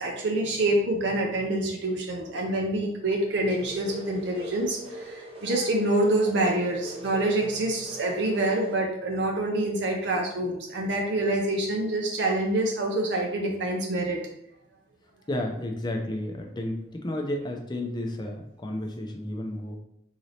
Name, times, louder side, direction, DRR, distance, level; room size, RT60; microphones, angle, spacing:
voice 1, 0.0-14.2, right 1 dB, 65° right, 0 dB, 0.6 m, -26 dB
sound 1, 3.6-8.8, right 1 dB, 30° right, 0.9 m, -41 dB
voice 2, 15.3-19.8, left 1 dB, 25° left, 2 dB, 0.5 m, -32 dB
3.9 x 2.7 x 3.2 m, 0.75 s
head